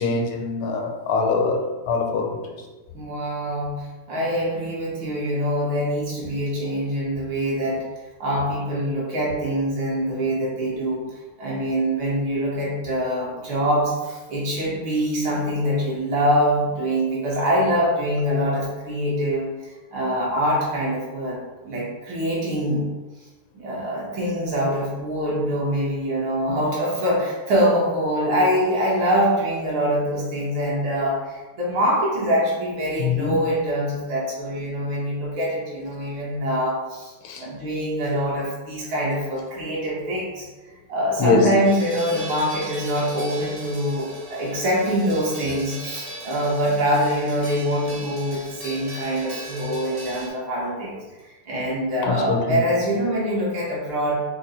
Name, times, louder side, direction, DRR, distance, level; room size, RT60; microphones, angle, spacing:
voice 1, 0.0-2.6 33.0-33.4 34.4-34.6 37.2-37.5 41.2-41.6 52.0-52.6, left 4 dB, 80° left, 3 dB, 1.4 m, -23 dB
voice 2, 2.9-7.8 8.2-11.0 11.4-22.8 23.5-40.5 40.9-51.0 51.5-54.1, equal, 65° right, -5 dB, 1.9 m, -24 dB
sound 1, 41.6-50.3, right 1 dB, 45° right, 0.5 m, -38 dB
5.2 x 2.1 x 4.1 m, 1.2 s
omnidirectional pair, 2.4 m